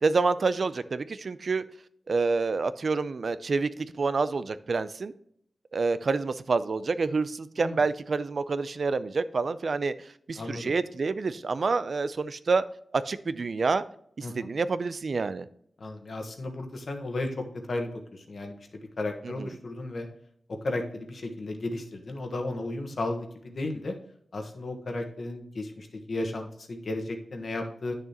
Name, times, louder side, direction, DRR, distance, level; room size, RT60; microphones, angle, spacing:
voice 1, 0.0-1.7 2.1-3.7 3.9-5.1 5.7-9.9 10.3-12.6 12.9-13.8 14.2-15.5 19.2-19.5, right 4 dB, 55° right, 14 dB, 0.4 m, -27 dB
voice 2, 10.4-10.8 14.2-14.3 15.8-18.6 19.0-20.1 20.6-23.9 24.3-28.0, left 2 dB, 60° left, 4 dB, 1.3 m, -34 dB
10.5 x 6.7 x 2.9 m, 0.67 s
wide cardioid pair, 125°, 0 cm